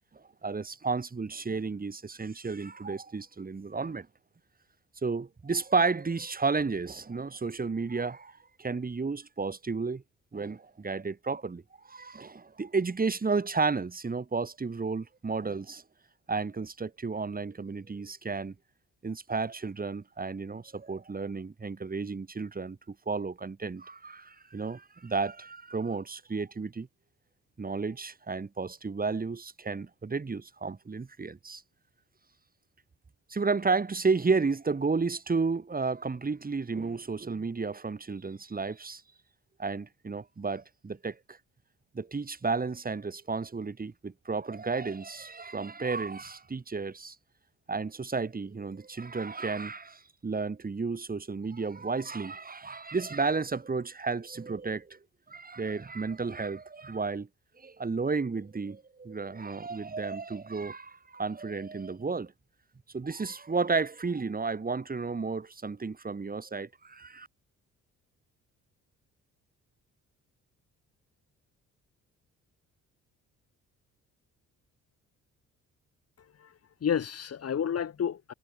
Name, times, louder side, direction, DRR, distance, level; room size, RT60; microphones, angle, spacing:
voice 1, 0.4-4.1 5.0-8.3 8.6-10.0 10.3-11.6 11.9-15.8 16.3-18.5 19.0-26.9 27.6-31.6 33.3-39.0 39.6-41.2 41.9-47.1 47.7-55.0 55.3-57.3 57.6-62.3 62.9-67.3, right 4 dB, 30° right, 6.5 m, -32 dB
voice 2, 76.2-78.3, left 8 dB, 55° left, 5.0 m, -31 dB
cardioid pair, 90°, 30 cm